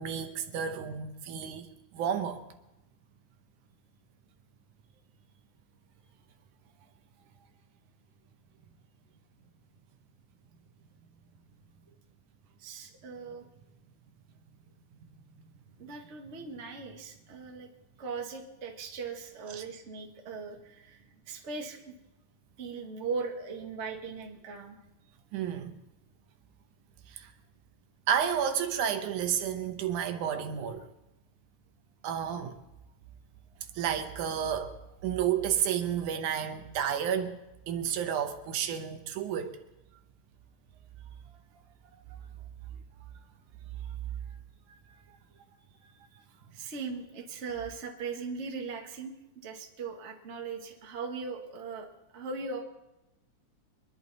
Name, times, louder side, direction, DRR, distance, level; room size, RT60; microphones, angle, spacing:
voice 1, 0.0-2.4 19.5-19.6 25.3-25.8 27.1-27.3 28.1-30.9 32.0-32.5 33.7-37.4 37.7-39.6, right 8 dB, 75° right, 2.3 m, -31 dB
voice 2, 12.6-13.4 15.8-17.7 18.0-21.9 22.6-24.8 43.6-43.9 46.5-49.1 49.4-52.6, right 4 dB, 35° right, 1.3 m, -39 dB
24.5 x 11.0 x 4.1 m
omnidirectional pair, 3.6 m